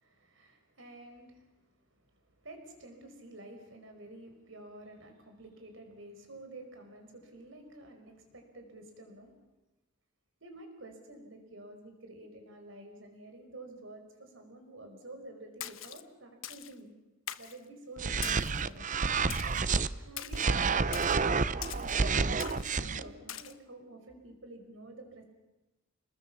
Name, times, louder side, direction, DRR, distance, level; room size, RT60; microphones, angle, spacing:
voice 1, 0.0-9.3 10.4-16.9 17.3-18.9 20.0-20.6 21.0-25.2, right 1 dB, 70° right, 5 dB, 5.0 m, -50 dB
Splash splatter, 15.6-16.0 16.4-16.7 17.3-17.6 18.2-18.6 19.3-19.6 20.2-20.5 20.9-21.2 21.6-22.0 22.4-22.8 23.3-23.5, left 11 dB, 90° left, 1.2 m, -42 dB
sound 1, 18.0-19.9 20.3-23.0, right 4 dB, 40° right, 0.7 m, -29 dB
29.5 x 21.0 x 7.2 m, 1.0 s
head